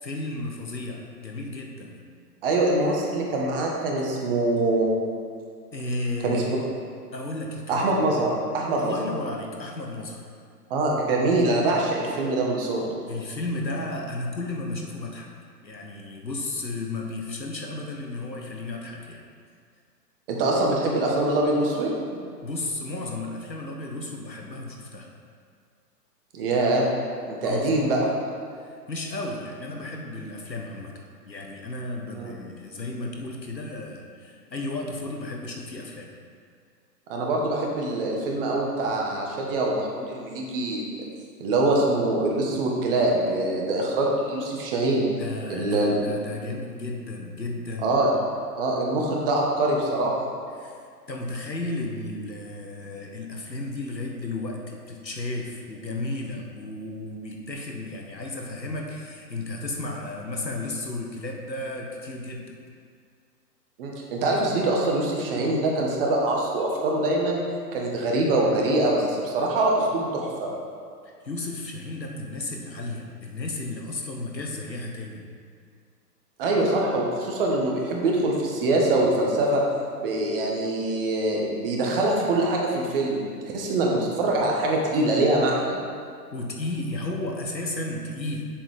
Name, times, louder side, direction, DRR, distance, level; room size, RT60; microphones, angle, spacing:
voice 1, 0.0-2.0 5.7-6.6 7.1-8.1 8.8-10.3 13.1-15.3 15.6-19.2 22.4-25.1 27.4-27.8 28.5-30.9 31.3-36.1 45.2-47.9 50.6-50.8 51.1-62.5 71.0-75.3 86.3-88.4, left 2 dB, 90° left, 1 dB, 1.3 m, -33 dB
voice 2, 2.4-4.9 6.2-6.4 7.7-9.0 10.7-12.9 20.3-21.9 26.3-26.9 27.3-28.0 32.1-32.3 37.1-40.8 41.4-45.0 45.5-46.0 47.8-48.1 48.5-50.1 63.8-67.4 67.7-70.5 76.4-79.6 80.0-85.8, right 2 dB, 35° right, -1 dB, 1.4 m, -24 dB
7.9 x 7.2 x 3.5 m, 2.1 s
figure-of-eight pair, 125°, 49 cm